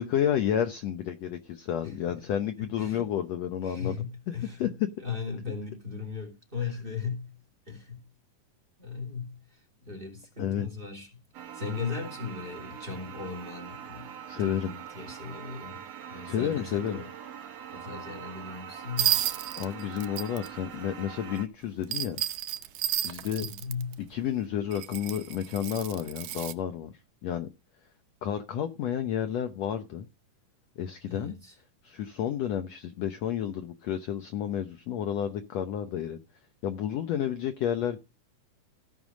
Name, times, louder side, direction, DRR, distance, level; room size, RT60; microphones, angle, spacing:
voice 1, 0.0-4.0 4.3-4.9 6.6-6.7 10.4-10.7 14.3-14.7 16.3-17.0 19.6-22.2 23.0-23.5 24.1-26.9 27.2-27.5 28.2-30.1 30.8-31.3 31.8-36.2 36.6-38.0, left 9 dB, 70° left, 1.8 m, -31 dB
voice 2, 1.8-2.2 2.8-3.1 3.6-4.7 5.0-7.3 7.7-8.0 8.8-9.4 9.8-11.2 11.5-14.1 14.4-15.8 16.1-17.1 17.7-19.2 23.4-24.0 31.1-31.5, left 5 dB, 15° right, 2.9 m, -37 dB
sound 1, 11.3-21.5, right 8 dB, 60° right, 2.1 m, -43 dB
sound 2, 19.0-20.5 21.8-23.9 24.7-26.5, right 11 dB, 80° right, 2.4 m, -31 dB
16.5 x 5.6 x 6.3 m
omnidirectional pair, 3.8 m